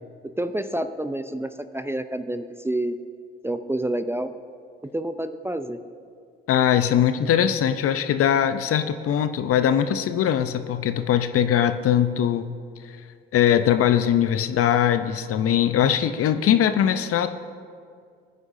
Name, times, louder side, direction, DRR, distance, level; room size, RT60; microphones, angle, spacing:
voice 1, 0.4-3.0 3.4-4.3 4.9-5.8, right 1 dB, 10° right, 10 dB, 0.6 m, -28 dB
voice 2, 6.5-12.5 13.3-17.3, left 9 dB, 50° left, 10 dB, 0.8 m, -21 dB
22.0 x 9.6 x 2.7 m, 2.2 s
hypercardioid pair, 55°, 30 cm